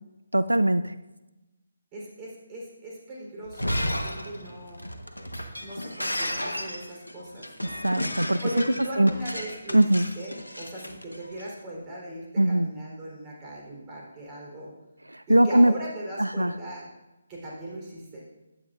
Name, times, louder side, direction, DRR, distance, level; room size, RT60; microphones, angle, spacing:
voice 1, 0.3-0.9 7.8-8.4 9.0-9.1 9.7-10.0 12.4-12.7 15.1-15.7 16.2-16.5, right 1 dB, 85° right, 13 dB, 0.4 m, -20 dB
voice 2, 1.9-4.8 5.6-7.8 8.4-14.7 15.3-16.8 17.3-18.2, right 1 dB, 20° right, -4 dB, 3.8 m, -39 dB
Shatter, 3.4-11.5, equal, 90° left, 1.3 m, -33 dB
15.5 x 10.0 x 2.6 m, 1.0 s
figure-of-eight pair, 145°, 0 cm